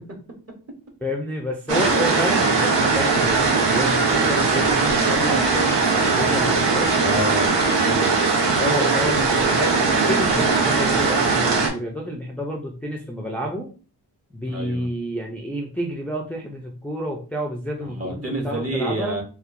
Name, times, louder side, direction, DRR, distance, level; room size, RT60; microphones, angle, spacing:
voice 1, 1.0-6.9 8.6-13.7 14.3-19.2, equal, 5° left, -1 dB, 0.5 m, -29 dB
sound 1, 1.7-11.7, right 4 dB, 80° right, 0.9 m, -20 dB
voice 2, 7.0-8.2 14.4-14.9 17.8-19.2, right 1 dB, 35° right, 1 dB, 1.0 m, -28 dB
4.3 x 2.3 x 2.6 m, 0.37 s
wide cardioid pair, 100°, 42 cm